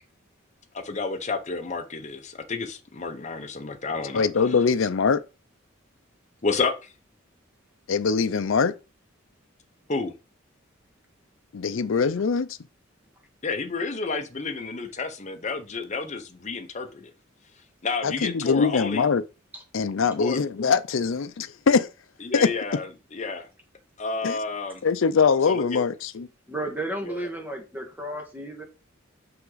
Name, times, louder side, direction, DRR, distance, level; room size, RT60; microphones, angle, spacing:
voice 1, 0.7-4.2 6.4-6.9 9.9-10.1 13.4-17.1 17.8-19.0 20.2-20.4 22.2-23.5 24.0-24.8 25.5-25.8 27.0-27.3, left 4 dB, 35° left, 0.9 m, -30 dB
voice 2, 4.1-5.2 7.9-8.7 11.5-12.6 18.0-19.2 19.7-21.9 22.3-22.5 24.2-24.4 24.8-26.3, left 5 dB, 70° left, 0.5 m, -22 dB
voice 3, 26.5-28.6, right 1 dB, 10° right, 1.6 m, -33 dB
5.9 x 5.8 x 3.9 m
head